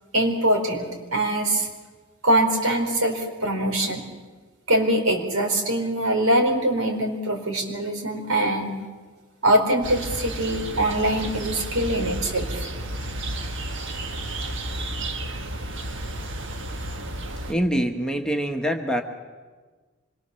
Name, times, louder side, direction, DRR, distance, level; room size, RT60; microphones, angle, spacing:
voice 1, 0.1-1.7 2.2-4.0 4.7-8.7 9.4-12.7, right 1 dB, 85° right, 2 dB, 4.6 m, -23 dB
sound 1, 9.8-17.5, right 1 dB, 60° right, 1.7 m, -32 dB
voice 2, 17.5-19.0, equal, 5° left, 3 dB, 1.2 m, -24 dB
25.5 x 22.5 x 7.0 m, 1.4 s
head